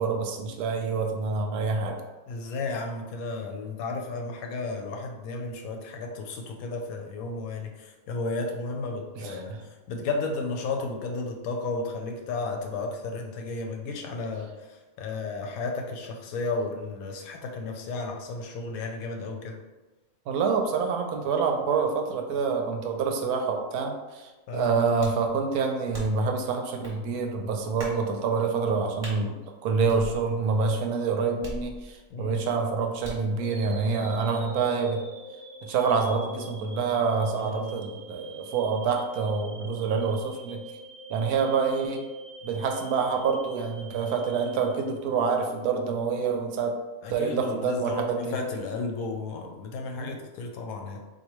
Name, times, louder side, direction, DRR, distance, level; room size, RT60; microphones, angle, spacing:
voice 1, 0.0-2.0 9.2-9.6 20.3-29.4 29.6-35.0 35.6-40.6 41.1-42.0 42.4-46.7 47.1-48.4 50.0-50.2, right 5 dB, 80° right, 3 dB, 1.1 m, -27 dB
voice 2, 2.3-9.5 9.9-19.6 24.5-24.8 32.1-32.4 37.4-37.7 39.6-39.9 47.0-51.0, left 3 dB, 70° left, 2 dB, 1.0 m, -33 dB
sound 1, 25.0-25.3 25.9-26.3 26.8-27.0 27.8-28.0 29.0-29.2 29.9-30.5 31.4-32.1 33.0-33.3, right 1 dB, 30° right, 0.8 m, -40 dB
sound 2, 33.4-45.5, right 1 dB, 60° right, 0.8 m, -44 dB
4.0 x 2.7 x 3.0 m, 1.2 s
omnidirectional pair, 1.6 m